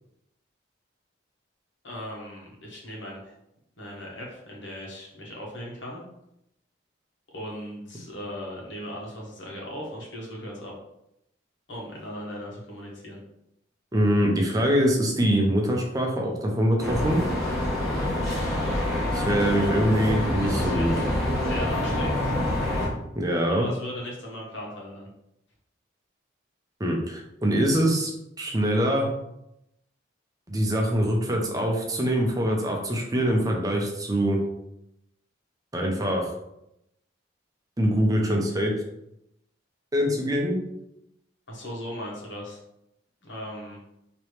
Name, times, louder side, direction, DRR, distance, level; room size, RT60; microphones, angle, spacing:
voice 1, 1.8-3.3 3.8-6.0 7.3-10.7 11.7-13.2 19.1-19.8 20.4-21.1 21.3-22.3 23.5-25.1 41.5-42.6 43.2-43.8, equal, 75° left, -3 dB, 1.4 m, -38 dB
voice 2, 13.9-17.2 19.1-20.9 23.2-23.7 26.8-28.1 28.4-29.1 30.5-34.4 35.7-36.3 37.8-38.7 39.9-40.6, equal, 20° right, 0 dB, 0.6 m, -24 dB
sound 1, 16.8-22.9, left 1 dB, ahead, 1.2 m, -26 dB
4.6 x 3.0 x 3.2 m, 0.82 s
head